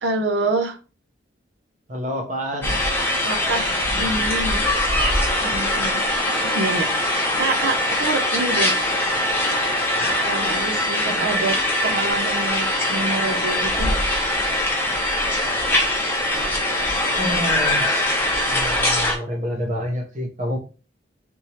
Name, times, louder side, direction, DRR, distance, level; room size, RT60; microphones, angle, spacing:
voice 1, 0.0-0.8 3.2-4.6 5.4-6.0 6.5-8.7 10.2-11.5 11.8-14.0, right 2 dB, 65° right, 5 dB, 0.6 m, -26 dB
voice 2, 1.9-2.7 11.1-11.3 17.1-18.0 18.5-20.6, equal, 40° right, 2 dB, 0.9 m, -28 dB
sound 1, 2.6-19.2, left 1 dB, 10° left, 0.6 m, -22 dB
3.5 x 2.9 x 2.9 m, 0.34 s
head